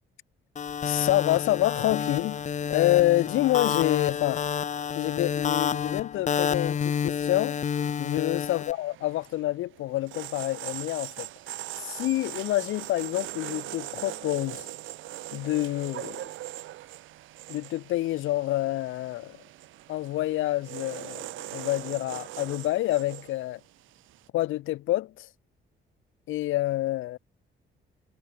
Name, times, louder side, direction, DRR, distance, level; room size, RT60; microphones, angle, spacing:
sound 1, 0.6-8.7, left 7 dB, 40° left, 0.6 m, -29 dB
voice 1, 0.8-2.4 2.7-4.4 5.0-7.6 8.0-11.3 11.8-14.7 15.3-16.3 17.5-19.4 19.9-23.6 24.3-25.3 26.3-27.2, left 16 dB, 85° left, 1.8 m, -27 dB
sound 2, 7.7-24.3, right 15 dB, 85° right, 1.0 m, -41 dB
cardioid pair, 90°, 20 cm